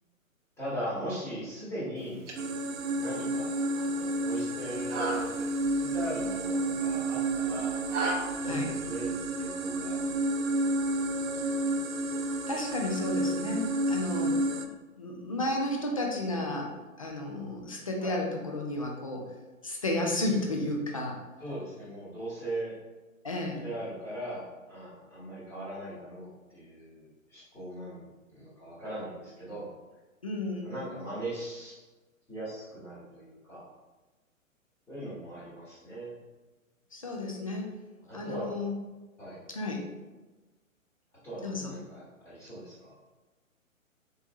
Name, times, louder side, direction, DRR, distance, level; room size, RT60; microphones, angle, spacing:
voice 1, 0.6-2.3 3.0-8.1 8.3-10.2 10.9-11.7 18.0-18.2 21.4-22.8 23.6-28.1 28.3-29.7 30.6-31.7 32.3-33.7 34.9-36.2 38.1-38.5 39.2-39.4 41.2-43.0, right 1 dB, 5° left, -10 dB, 1.1 m, -39 dB
sound 1, 2.0-8.1, right 2 dB, 60° right, 0.9 m, -39 dB
sound 2, 2.4-14.7, right 2 dB, 75° right, 0.5 m, -31 dB
voice 2, 12.5-19.3 19.6-21.2 23.2-23.6 30.2-30.7 36.9-37.7 38.1-38.8 39.5-39.8 41.4-41.8, left 1 dB, 25° left, 0 dB, 0.4 m, -33 dB
4.4 x 3.7 x 2.6 m, 1.2 s
figure-of-eight pair, 125°, 41 cm